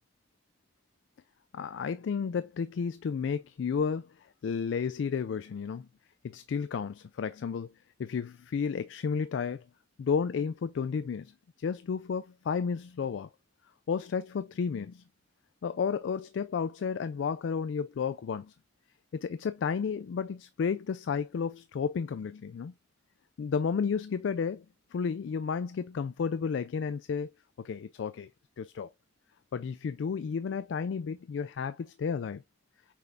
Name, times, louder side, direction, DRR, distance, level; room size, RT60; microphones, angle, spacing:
voice 1, 1.5-4.1 4.4-5.9 6.2-7.7 8.0-9.6 10.0-11.3 11.6-13.3 13.9-15.0 15.6-18.5 19.1-22.7 23.4-24.7 24.9-27.3 27.6-28.3 28.6-28.9 29.5-32.4, left 6 dB, 85° left, 0.3 m, -32 dB
6.0 x 3.4 x 2.4 m
head